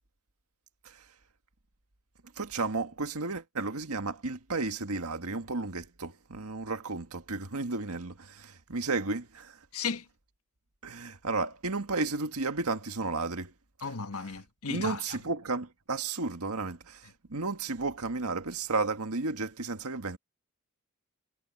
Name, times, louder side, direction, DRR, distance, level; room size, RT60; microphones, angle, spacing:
voice 1, 2.4-9.6 10.8-13.5 14.7-20.2, right 3 dB, 85° right, 1.8 m, -33 dB
voice 2, 9.7-10.0 13.8-15.2, left 5 dB, 85° left, 1.4 m, -35 dB
head